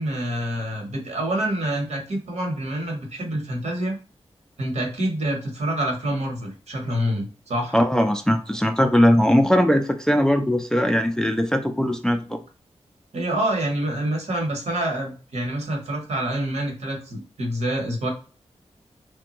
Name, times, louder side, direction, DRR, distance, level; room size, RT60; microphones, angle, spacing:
voice 1, 0.0-3.9 4.6-7.8 13.1-18.1, right 1 dB, 75° right, 1 dB, 1.1 m, -27 dB
voice 2, 7.7-12.4, equal, 5° left, 5 dB, 0.3 m, -20 dB
3.4 x 2.2 x 2.9 m, 0.38 s
wide cardioid pair, 105°, 11 cm